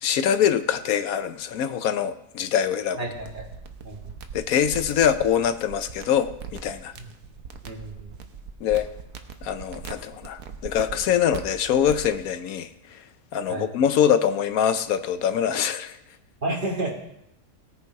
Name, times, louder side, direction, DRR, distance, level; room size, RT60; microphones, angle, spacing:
voice 1, 0.0-3.0 4.3-6.9 8.6-8.9 9.4-13.0 13.3-16.0, left 9 dB, 80° left, 11 dB, 1.2 m, -24 dB
voice 2, 3.0-3.4 3.8-4.1 7.0-7.1 7.6-8.1 13.5-13.7 16.4-16.9, right 2 dB, 35° right, -2 dB, 2.6 m, -31 dB
sound 1, 3.1-12.2, right 6 dB, 80° right, 1.3 m, -40 dB
17.0 x 7.0 x 4.7 m, 0.79 s
omnidirectional pair, 1.5 m